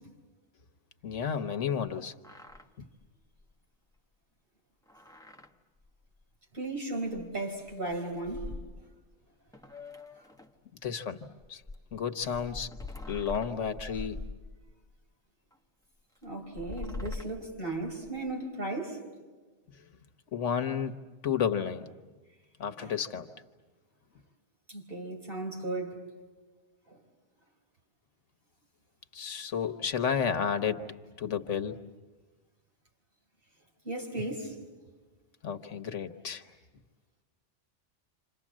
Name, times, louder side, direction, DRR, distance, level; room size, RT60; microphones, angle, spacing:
voice 1, 1.0-2.1 10.8-11.2 11.5-11.6 11.9-12.7 13.1-14.2 20.3-20.9 21.2-21.9 22.6-23.3 29.1-30.9 31.2-31.8 35.4-36.4, left 7 dB, 85° left, 1.4 m, -31 dB
sound 1, 2.1-2.7 3.0-3.1 3.4-3.5 4.9-5.5 5.8-5.9 7.1-7.2 7.6-9.1 9.5-10.6 11.4-14.9 15.5-15.6 16.4-18.3, left 3 dB, 5° left, 0.8 m, -43 dB
voice 2, 6.5-8.5 16.2-19.0 22.8-22.9 24.7-26.0 26.9-27.0 33.8-34.6, right 2 dB, 50° right, 4.6 m, -36 dB
28.0 x 27.0 x 7.5 m
omnidirectional pair, 1.2 m